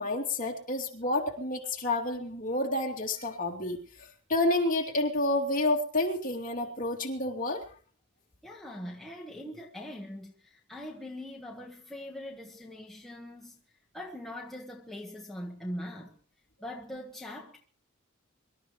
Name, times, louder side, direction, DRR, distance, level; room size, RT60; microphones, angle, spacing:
voice 1, 0.0-3.8 4.3-7.6, left 2 dB, 40° left, 3.0 m, -29 dB
voice 2, 8.4-13.6 13.9-16.2 16.6-17.6, left 1 dB, ahead, 1.5 m, -42 dB
24.5 x 12.5 x 3.2 m
head